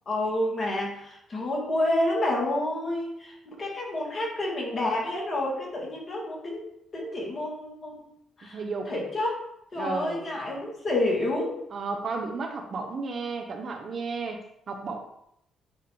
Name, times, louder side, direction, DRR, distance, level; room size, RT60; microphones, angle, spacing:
voice 1, 0.1-6.6 6.9-8.1 8.4-8.6 8.9-9.4 9.7-11.6, left 1 dB, 40° left, -3 dB, 2.4 m, -29 dB
voice 2, 8.4-8.9 9.8-10.3 11.7-15.0, right 4 dB, 50° right, 4 dB, 1.0 m, -33 dB
9.0 x 3.2 x 3.5 m, 0.76 s
cardioid pair, 90°, 0 cm